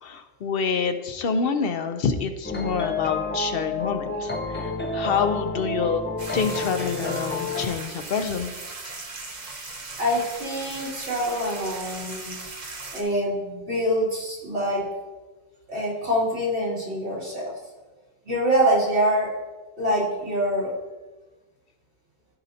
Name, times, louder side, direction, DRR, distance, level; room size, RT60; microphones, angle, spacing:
voice 1, 0.0-6.0 6.3-8.5, left 5 dB, 65° left, 8 dB, 0.8 m, -27 dB
sound 1, 2.4-7.7, left 3 dB, 15° left, 0.5 m, -29 dB
sound 2, 6.2-13.0, right 3 dB, 45° right, 1.1 m, -38 dB
voice 2, 10.0-12.3 12.9-14.9 15.7-17.5 18.2-19.3 19.8-20.7, equal, 80° right, -7 dB, 3.0 m, -25 dB
13.5 x 5.4 x 2.8 m, 1.2 s
omnidirectional pair, 1.1 m